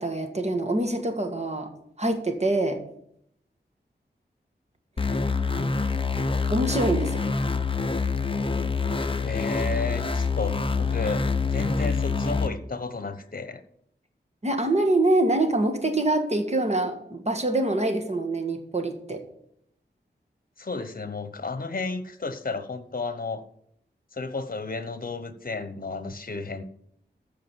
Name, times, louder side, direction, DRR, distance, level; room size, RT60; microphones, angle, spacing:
voice 1, 0.0-1.7 2.0-2.8 5.5-5.7 6.5-7.2 14.4-19.2, right 2 dB, 35° right, 5 dB, 1.7 m, -25 dB
sound 1, 5.0-12.5, left 4 dB, 30° left, 0.7 m, -26 dB
voice 2, 9.2-13.6 20.6-23.4 24.1-26.6, left 3 dB, 50° left, 11 dB, 1.0 m, -32 dB
14.0 x 5.1 x 7.3 m, 0.73 s
wide cardioid pair, 75°, 18 cm